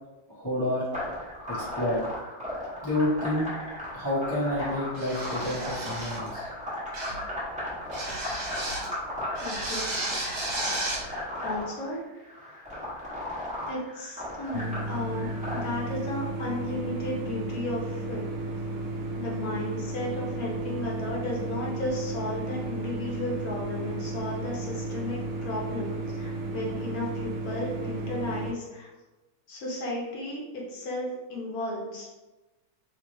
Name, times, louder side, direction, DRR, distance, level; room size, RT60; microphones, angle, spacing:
voice 1, 0.3-0.8 1.5-2.1 2.8-3.5 3.9-6.5, left 1 dB, 25° left, -9 dB, 0.5 m, -29 dB
sound 1, 0.9-15.6, left 1 dB, 5° right, 0.8 m, -36 dB
sound 2, 4.9-6.3 6.9-7.3 7.9-8.9 9.3-11.1, right 2 dB, 50° right, 1.6 m, -33 dB
voice 2, 9.4-10.1 11.4-12.0 13.7-18.2 19.2-28.9 29.5-32.1, left 1 dB, 55° left, -3 dB, 1.1 m, -34 dB
sound 3, 14.5-28.5, right 2 dB, 90° right, 0.8 m, -33 dB
3.5 x 3.0 x 3.0 m, 1.1 s
omnidirectional pair, 2.4 m